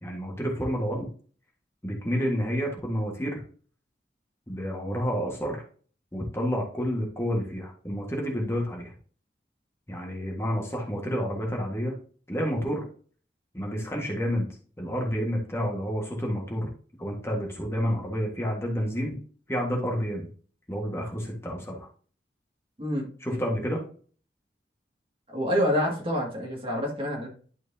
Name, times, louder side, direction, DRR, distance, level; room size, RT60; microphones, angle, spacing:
voice 1, 0.0-1.1 1.8-3.4 4.5-5.6 6.1-8.9 9.9-12.0 12.3-12.8 13.5-14.5 14.8-16.7 17.0-19.2 19.5-20.3 20.7-21.9 23.2-23.8, equal, 15° left, -1 dB, 1.6 m, -29 dB
voice 2, 22.8-23.4 25.3-27.3, equal, 30° right, 0 dB, 2.1 m, -27 dB
11.0 x 4.6 x 2.7 m, 0.43 s
head